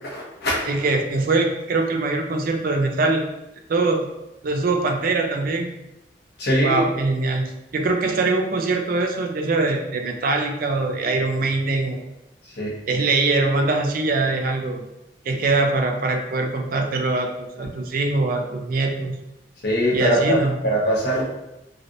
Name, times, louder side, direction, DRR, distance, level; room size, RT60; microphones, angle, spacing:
voice 1, 0.0-0.7 6.4-6.8 12.6-12.8 19.6-21.2, equal, 60° left, -5 dB, 1.0 m, -22 dB
voice 2, 0.6-3.3 3.7-4.1 4.4-5.7 6.6-12.0 12.9-14.8 15.2-19.2 19.9-20.5, right 3 dB, 50° right, 3 dB, 0.4 m, -22 dB
3.2 x 2.5 x 2.7 m, 0.91 s
head